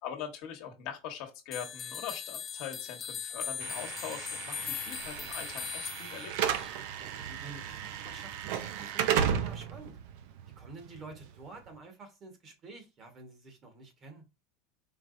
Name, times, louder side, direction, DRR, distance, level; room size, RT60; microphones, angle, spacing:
voice 1, 0.0-6.6, left 8 dB, 60° left, 1.2 m, -42 dB
sound 1, 1.5-6.7, left 8 dB, 30° left, 0.5 m, -40 dB
Slam / Alarm, 3.6-11.7, right 8 dB, 70° right, 0.5 m, -34 dB
voice 2, 7.0-10.0 10.6-14.2, right 3 dB, 35° right, 1.2 m, -49 dB
4.6 x 3.3 x 2.6 m
supercardioid pair, 130°, 0 cm